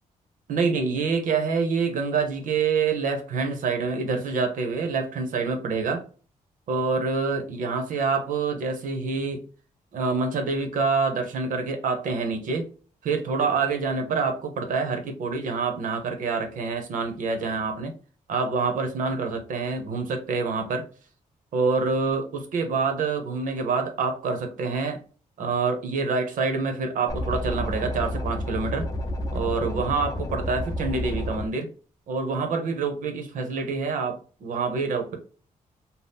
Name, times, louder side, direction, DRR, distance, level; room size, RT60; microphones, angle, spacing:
voice 1, 0.5-6.0 6.7-9.4 9.9-12.7 13.0-17.9 18.3-20.8 21.5-25.0 25.4-28.9 29.3-31.7 32.1-35.2, right 4 dB, 70° right, 5 dB, 0.7 m, -26 dB
sound 1, 27.1-31.5, left 1 dB, 25° left, 0.5 m, -30 dB
2.7 x 2.0 x 3.4 m, 0.38 s
cardioid pair, 135°, 14 cm